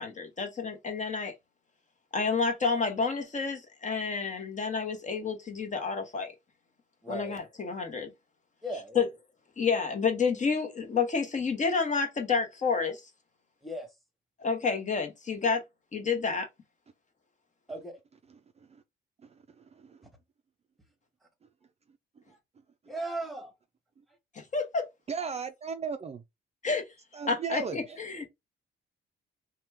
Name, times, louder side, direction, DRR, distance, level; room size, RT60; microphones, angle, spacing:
voice 1, 0.0-1.3 2.1-6.3 7.1-8.1 8.9-9.1 9.6-13.0 14.4-15.6 15.9-16.5 24.3-24.9 26.6-26.9 27.3-28.3, left 5 dB, 40° left, 1.0 m, -29 dB
voice 2, 7.0-7.4 8.6-9.1 13.6-13.9 17.7-18.0 22.3-22.4 22.9-23.5, right 1 dB, ahead, 1.3 m, -37 dB
voice 3, 25.1-26.2 27.1-28.0, right 5 dB, 35° right, 0.4 m, -35 dB
2.9 x 2.2 x 3.4 m
cardioid pair, 90°, 20 cm